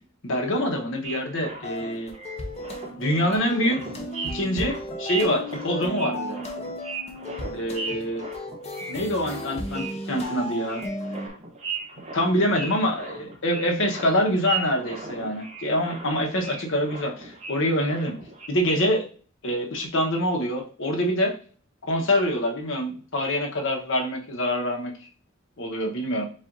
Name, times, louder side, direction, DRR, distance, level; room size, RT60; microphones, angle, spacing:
voice 1, 0.2-2.1 3.0-3.8 4.3-6.4 7.6-8.2 8.9-10.8 12.1-18.1 18.5-19.1 19.4-21.3 21.8-24.9 25.6-26.3, equal, 65° left, 2 dB, 1.0 m, -25 dB
sound 1, 1.0-18.5, right 4 dB, 30° right, 0.9 m, -37 dB
sound 2, 1.6-11.3, left 1 dB, 30° left, 0.7 m, -35 dB
7.5 x 2.5 x 2.6 m, 0.41 s
head